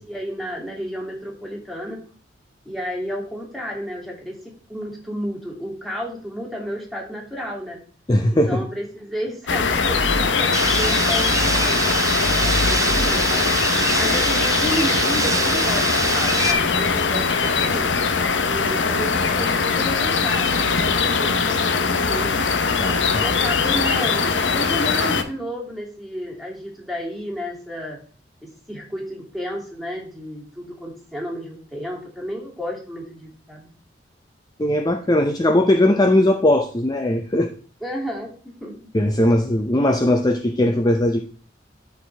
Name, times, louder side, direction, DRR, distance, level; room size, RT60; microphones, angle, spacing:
voice 1, 0.0-2.0 2.6-7.8 8.3-13.5 14.0-17.9 18.4-22.4 23.2-28.0 28.4-33.7 37.8-38.3 38.6-38.9, equal, ahead, -2 dB, 2.6 m, -32 dB
voice 2, 8.1-8.7 22.8-23.2 34.6-37.5 38.9-41.2, left 1 dB, 20° left, 6 dB, 0.6 m, -19 dB
sound 1, 9.5-25.2, left 5 dB, 80° left, 0.9 m, -21 dB
sound 2, 10.5-16.5, right 4 dB, 20° right, 0.6 m, -24 dB
12.5 x 4.7 x 3.4 m, 0.41 s
head